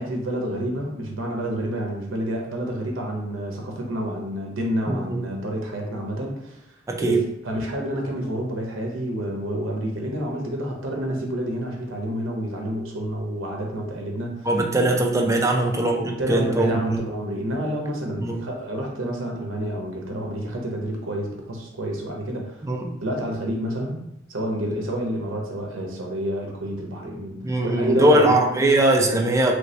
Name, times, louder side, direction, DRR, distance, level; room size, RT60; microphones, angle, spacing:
voice 1, 0.0-6.6 7.0-14.8 15.4-22.6 23.0-28.4 29.1-29.2, equal, 80° right, 0 dB, 0.7 m, -29 dB
voice 2, 4.9-5.2 6.9-7.2 14.5-17.0 18.2-18.4 22.6-22.9 27.4-29.5, right 1 dB, 15° right, 1 dB, 0.4 m, -21 dB
3.1 x 2.7 x 3.2 m, 0.83 s
head